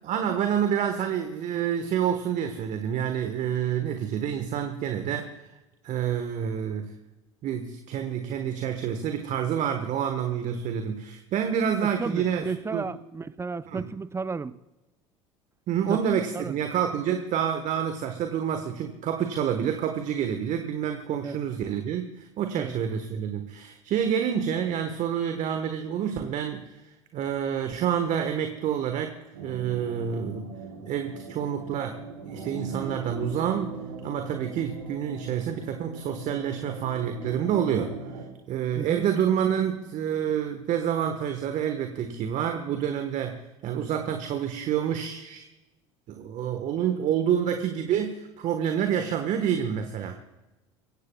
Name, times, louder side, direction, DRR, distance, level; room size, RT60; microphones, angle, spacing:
voice 1, 0.0-5.3 5.8-6.9 7.4-12.9 13.6-13.8 15.7-26.7 27.1-29.1 29.4-30.5 30.9-38.2 38.5-45.4 46.1-50.2, right 8 dB, 45° right, 6 dB, 1.4 m, -28 dB
voice 2, 12.0-14.6 15.9-16.0 16.3-16.6 19.5-19.7 21.2-21.4 22.6-22.7 38.8-39.1, right 4 dB, 15° right, 16 dB, 0.6 m, -33 dB
sound 1, 29.3-38.3, right 4 dB, 80° right, 3.8 m, -39 dB
23.0 x 16.5 x 2.4 m, 1.0 s
hypercardioid pair, 75°, 17 cm